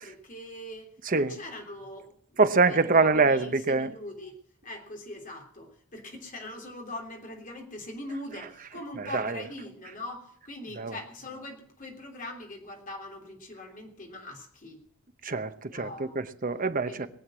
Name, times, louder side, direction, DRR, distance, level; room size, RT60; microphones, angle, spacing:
voice 1, 0.0-2.4 2.7-14.8 15.7-16.2 16.8-17.1, left 1 dB, 35° left, 3.3 m, -42 dB
voice 2, 2.4-3.9 9.1-9.4 10.8-10.9 15.2-15.9 16.2-17.1, right 4 dB, 40° right, 0.9 m, -24 dB
21.0 x 8.0 x 7.6 m
head